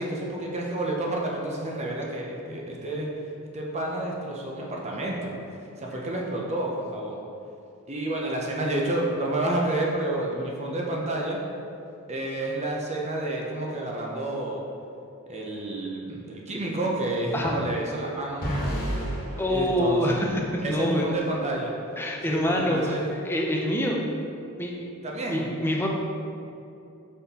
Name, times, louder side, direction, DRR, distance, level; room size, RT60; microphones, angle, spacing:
voice 1, 0.0-3.1 3.5-5.3 5.8-7.2 7.9-11.4 12.1-14.7 15.3-18.5 19.5-20.2 20.6-21.7 22.3-23.1 25.0-25.5, right 1 dB, 30° right, -1 dB, 0.7 m, -29 dB
sound 1, 18.4-20.6, equal, 40° left, 1.4 m, -31 dB
voice 2, 19.4-21.2 22.0-24.0 24.6-24.8 25.3-25.9, equal, 10° left, -1 dB, 0.6 m, -26 dB
5.4 x 4.3 x 4.2 m, 2.6 s
head